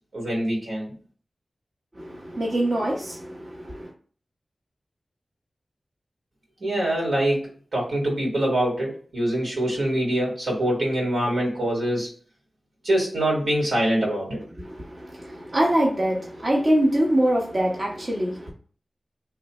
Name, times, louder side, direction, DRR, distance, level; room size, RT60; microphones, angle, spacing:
voice 1, 0.1-0.9 6.6-12.1 12.8-14.4, right 1 dB, 85° right, 1.8 m, -24 dB
voice 2, 1.9-3.9 14.6-18.5, right 1 dB, 45° right, 0.9 m, -24 dB
3.2 x 2.5 x 4.1 m
wide cardioid pair, 80°, 0 cm